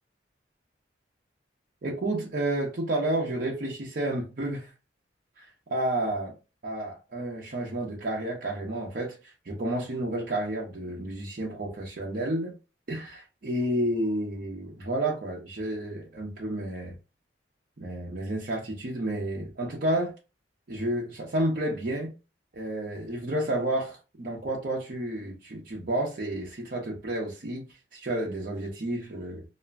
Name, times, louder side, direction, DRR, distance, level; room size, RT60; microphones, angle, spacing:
voice 1, 1.8-4.7 5.4-6.3 6.6-9.2 9.4-12.5 12.9-16.9 17.8-20.1 20.7-22.1 22.5-27.6 27.9-29.4, right 1 dB, 50° right, 0.6 m, -31 dB
2.4 x 2.0 x 3.4 m
head